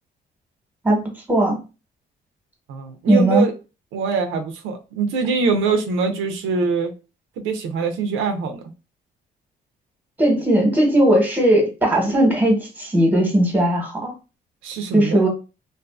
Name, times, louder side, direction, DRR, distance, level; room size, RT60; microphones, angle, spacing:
voice 1, 1.3-1.6 3.1-3.5 10.2-14.1 14.9-15.3, right 1 dB, 10° right, 1.0 m, -17 dB
voice 2, 2.7-3.5 3.9-6.9 7.4-8.6 14.6-15.3, right 4 dB, 85° right, 0.5 m, -23 dB
2.5 x 2.4 x 2.3 m
cardioid pair, 90°, 20 cm